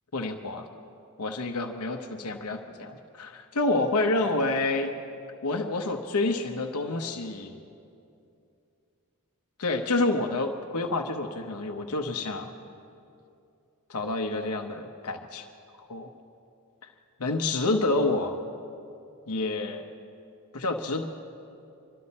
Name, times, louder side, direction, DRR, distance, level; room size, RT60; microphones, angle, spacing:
voice 1, 0.1-0.7 1.2-4.9 5.4-7.6 9.6-12.5 13.9-15.5 15.8-16.1 17.2-18.4 19.3-19.8 20.5-21.1, left 2 dB, 85° left, 4 dB, 0.9 m, -28 dB
24.0 x 13.0 x 4.2 m, 2.6 s
head